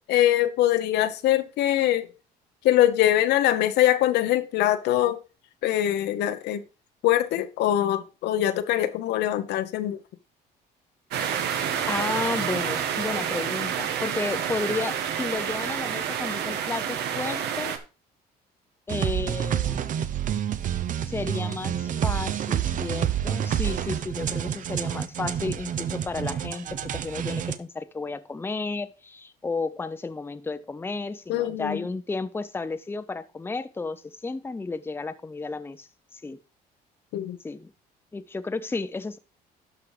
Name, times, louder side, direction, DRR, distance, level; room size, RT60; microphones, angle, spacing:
voice 1, 0.0-2.1 2.6-5.2 5.6-6.6 7.0-10.0 31.3-31.8 37.1-37.4, left 12 dB, 80° left, 1.1 m, -23 dB
sound 1, 11.1-17.8, right 8 dB, 80° right, 1.4 m, -29 dB
voice 2, 11.9-17.8 18.9-19.9 21.0-36.4 37.4-37.7 38.1-39.2, left 3 dB, 15° left, 0.7 m, -33 dB
sound 2, 18.9-27.6, right 9 dB, 50° right, 0.8 m, -28 dB
12.0 x 5.1 x 4.9 m
cardioid pair, 110°, 17 cm